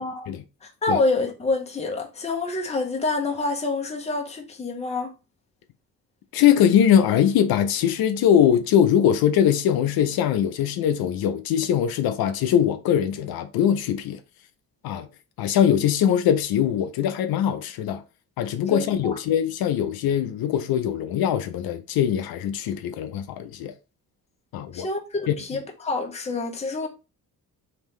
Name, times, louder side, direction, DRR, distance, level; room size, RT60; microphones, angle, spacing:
voice 1, 0.0-5.1 18.7-19.1 24.7-26.9, left 3 dB, 20° left, 0.6 m, -27 dB
voice 2, 6.3-14.2 14.8-15.1 15.4-18.0 18.4-23.7 24.5-24.9 25.3-25.4, left 9 dB, 75° left, 0.5 m, -22 dB
3.6 x 2.8 x 3.1 m
cardioid pair, 165°, 37 cm